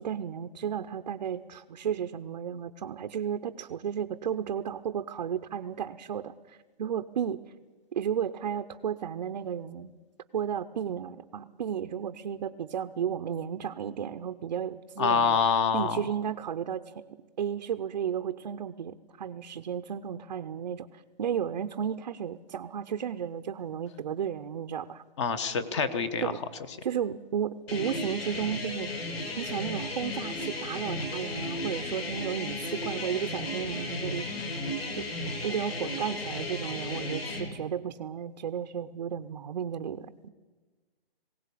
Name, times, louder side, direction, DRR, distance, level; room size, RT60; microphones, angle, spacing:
voice 1, 0.0-7.4 7.9-9.9 10.3-15.4 15.7-17.0 17.4-25.0 26.2-26.4 26.8-28.9 29.3-34.3 34.9-35.1 35.4-40.3, right 8 dB, 40° right, 8 dB, 0.7 m, -33 dB
voice 2, 15.0-16.0 25.2-26.3, left 6 dB, 30° left, 13 dB, 1.1 m, -26 dB
sound 1, 27.7-37.5, left 2 dB, 75° left, 5.9 m, -35 dB
20.5 x 17.5 x 8.4 m, 1.3 s
hypercardioid pair, 160°, 31 cm